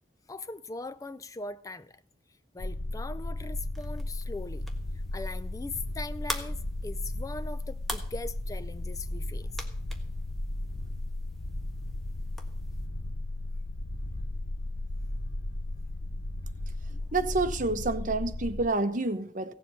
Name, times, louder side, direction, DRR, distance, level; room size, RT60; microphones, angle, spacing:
voice 1, 0.3-2.0 2.5-4.7 5.1-9.5 15.1-15.2 16.9-17.1, left 3 dB, 20° left, 0.4 m, -40 dB
sound 1, 2.6-18.7, left 1 dB, 75° left, 0.8 m, -35 dB
sound 2, 3.7-12.9, equal, ahead, 1.4 m, -45 dB
voice 2, 17.1-19.5, right 2 dB, 45° right, 1.0 m, -28 dB
16.5 x 7.5 x 5.5 m
head